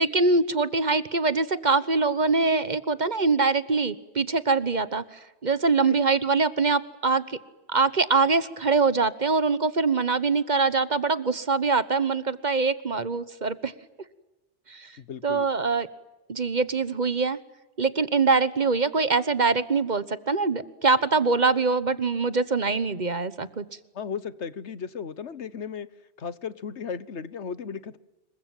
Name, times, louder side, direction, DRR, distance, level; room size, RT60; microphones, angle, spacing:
voice 1, 0.0-5.0 5.4-7.4 7.7-13.7 14.7-14.9 15.2-15.9 16.3-17.4 17.8-23.6, right 4 dB, 40° right, 15 dB, 1.3 m, -23 dB
voice 2, 15.0-15.5 23.9-25.9 26.2-28.0, left 6 dB, 85° left, 16 dB, 1.4 m, -35 dB
27.0 x 23.0 x 9.0 m, 1.0 s
omnidirectional pair, 1.1 m